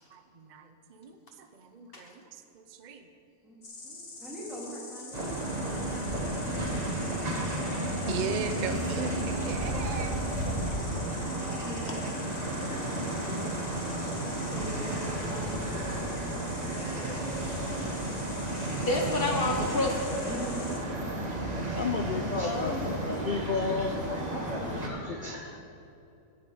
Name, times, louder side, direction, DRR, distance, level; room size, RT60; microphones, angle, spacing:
voice 1, 0.1-3.1 8.0-10.2 10.7-11.2, right 5 dB, 45° right, 7 dB, 0.6 m, -38 dB
Insect, 3.6-20.8, left 3 dB, 70° left, 2.2 m, -45 dB
voice 2, 3.8-6.0 11.4-12.1 12.4-13.3 14.3-17.1 18.0-18.2 20.2-21.1 24.3-25.1, right 1 dB, ahead, -6 dB, 3.0 m, -43 dB
sound 1, 5.1-24.9, right 1 dB, 25° right, 1.3 m, -32 dB
voice 3, 12.7-13.5 18.8-20.1 22.4-23.0, left 2 dB, 40° left, 2 dB, 1.1 m, -31 dB
voice 4, 21.5-24.3 24.7-25.6, left 4 dB, 85° left, 5 dB, 0.4 m, -33 dB
9.5 x 7.3 x 9.2 m, 2.7 s
omnidirectional pair, 1.7 m